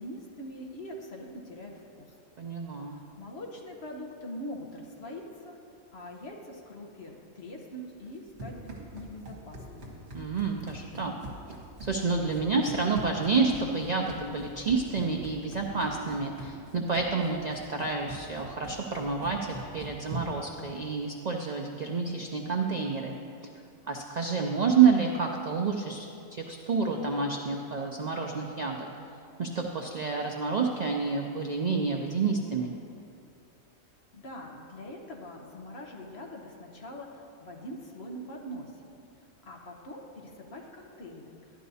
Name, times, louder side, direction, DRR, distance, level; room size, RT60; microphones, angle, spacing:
voice 1, 0.0-2.1 2.7-5.6 5.9-10.0 34.1-38.7 39.4-41.3, equal, 50° left, 0 dB, 1.2 m, -43 dB
voice 2, 2.4-3.0 10.1-11.1 11.8-23.1 23.9-28.9 29.4-32.7, right 5 dB, 90° right, 1 dB, 0.3 m, -29 dB
Run, 8.0-20.5, right 2 dB, 55° right, 1.7 m, -44 dB
11.5 x 11.0 x 2.7 m, 2.5 s
omnidirectional pair, 1.4 m